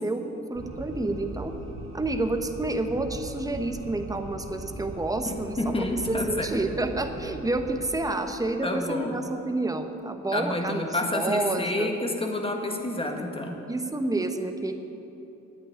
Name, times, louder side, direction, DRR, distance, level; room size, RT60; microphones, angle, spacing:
voice 1, 0.0-1.5 1.9-10.9 11.1-11.9 13.7-14.7, right 2 dB, 10° right, 6 dB, 1.1 m, -29 dB
sound 1, 0.5-8.0, right 2 dB, 45° right, 1.7 m, -40 dB
voice 2, 5.2-6.5 8.6-9.2 10.3-13.6, left 2 dB, 20° left, 3 dB, 1.7 m, -29 dB
9.5 x 9.1 x 10.0 m, 3.0 s
cardioid pair, 90°, 30 cm